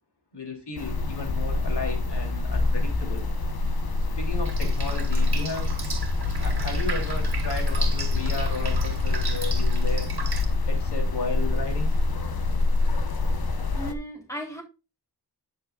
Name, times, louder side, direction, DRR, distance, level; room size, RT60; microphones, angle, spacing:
voice 1, 0.3-3.3 4.2-5.7 6.4-10.2 10.7-12.0, left 4 dB, 85° left, 3.3 m, -34 dB
sound 1, 0.8-13.9, left 3 dB, 65° left, 1.2 m, -25 dB
Drip, 4.5-10.5, right 5 dB, 70° right, 2.0 m, -37 dB
voice 2, 13.7-14.6, right 1 dB, 10° left, 3.6 m, -35 dB
11.5 x 6.5 x 2.4 m
wide cardioid pair, 100°, 40 cm